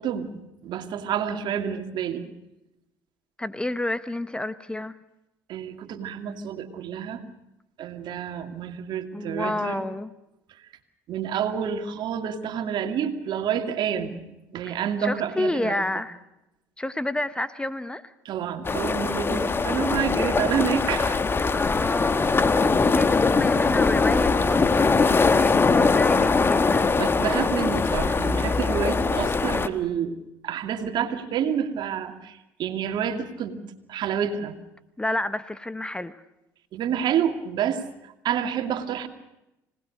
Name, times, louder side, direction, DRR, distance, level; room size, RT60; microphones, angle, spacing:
voice 1, 0.0-2.3 5.5-7.2 7.8-9.9 11.1-15.8 18.2-21.2 27.0-30.2 30.4-33.6 33.9-34.6 36.7-39.1, right 8 dB, 60° right, 7 dB, 2.5 m, -29 dB
voice 2, 3.4-5.0 9.1-10.1 14.7-16.2 16.8-18.1 21.5-22.3 22.6-27.0 35.0-36.2, left 1 dB, 10° left, 14 dB, 1.1 m, -30 dB
sound 1, 18.6-29.7, left 4 dB, 25° left, 1.4 m, -22 dB
25.5 x 19.0 x 6.6 m, 0.91 s
supercardioid pair, 80°, 9 cm